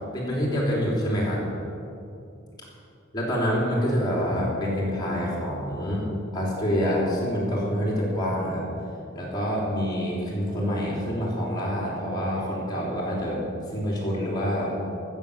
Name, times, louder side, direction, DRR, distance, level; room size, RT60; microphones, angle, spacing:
voice 1, 0.1-1.4 3.1-6.1 6.3-8.6 9.1-13.4 13.7-14.7, equal, 20° left, -4 dB, 3.5 m, -26 dB
14.5 x 7.2 x 6.8 m, 2.7 s
head